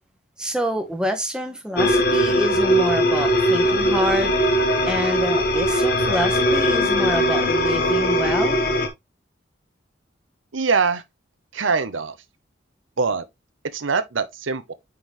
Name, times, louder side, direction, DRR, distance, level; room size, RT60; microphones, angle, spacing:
voice 1, 0.4-4.3 4.8-8.6, equal, 5° right, 1.1 m, -27 dB
sound 1, 1.8-8.9, equal, 50° left, 1.4 m, -20 dB
voice 2, 10.5-11.0 11.5-12.2 13.0-13.2 13.7-14.7, right 5 dB, 85° right, 0.8 m, -23 dB
9.5 x 3.8 x 3.1 m
head